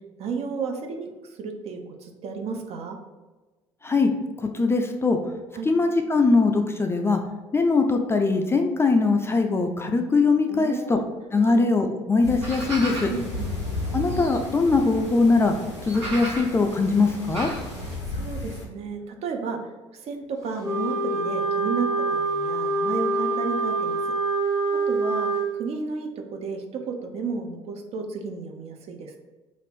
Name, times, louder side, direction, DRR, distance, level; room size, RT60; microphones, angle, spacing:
voice 1, 0.2-3.0 5.5-5.7 10.5-11.1 11.4-11.6 13.1-13.5 18.1-19.6 19.9-24.6 24.9-29.2, right 4 dB, 45° right, 3 dB, 0.5 m, -33 dB
voice 2, 4.5-5.2 5.7-7.2 7.5-11.0 11.3-13.1 13.9-15.5 15.9-17.5, left 3 dB, 15° left, 4 dB, 0.3 m, -21 dB
sound 1, 12.2-18.7, left 2 dB, 90° left, 0.5 m, -35 dB
sound 2, 12.4-18.0, right 1 dB, 80° right, 1.1 m, -36 dB
Wind instrument woodwind instrument, 20.6-25.5, right 3 dB, 20° right, 1.3 m, -25 dB
2.5 x 2.5 x 3.4 m, 1.2 s
figure-of-eight pair, 60°, 15 cm